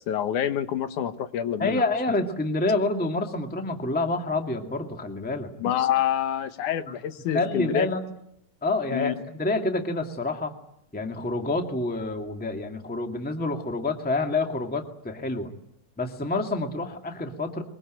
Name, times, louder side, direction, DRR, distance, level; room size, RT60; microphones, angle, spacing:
voice 1, 0.0-1.8 5.6-7.9 8.9-9.1, left 10 dB, 75° left, 10 dB, 2.6 m, -27 dB
voice 2, 1.6-5.5 7.3-8.0 8.6-10.5 10.9-15.5 16.0-17.6, left 2 dB, 5° left, 4 dB, 1.6 m, -27 dB
23.0 x 22.0 x 9.0 m, 0.75 s
omnidirectional pair, 3.6 m